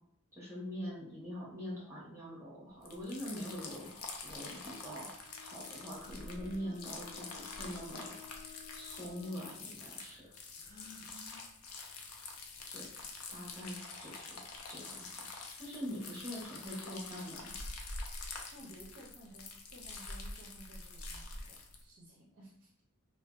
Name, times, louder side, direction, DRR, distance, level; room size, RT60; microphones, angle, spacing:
voice 1, 0.3-3.9 4.2-5.1 5.4-8.2 8.7-10.3 12.7-12.9 13.3-14.4 14.7-15.3 15.6-17.6, equal, 10° right, -6 dB, 1.0 m, -43 dB
sound 1, 2.8-21.8, left 3 dB, 70° left, 0.4 m, -46 dB
Bowed string instrument, 4.6-9.6, left 9 dB, 55° left, 1.0 m, -56 dB
Gasp, 10.5-11.1, left 5 dB, 15° left, 0.5 m, -55 dB
voice 2, 11.0-11.4 18.5-22.8, right 1 dB, 50° right, -3 dB, 0.5 m, -55 dB
2.5 x 2.1 x 2.3 m, 0.72 s
head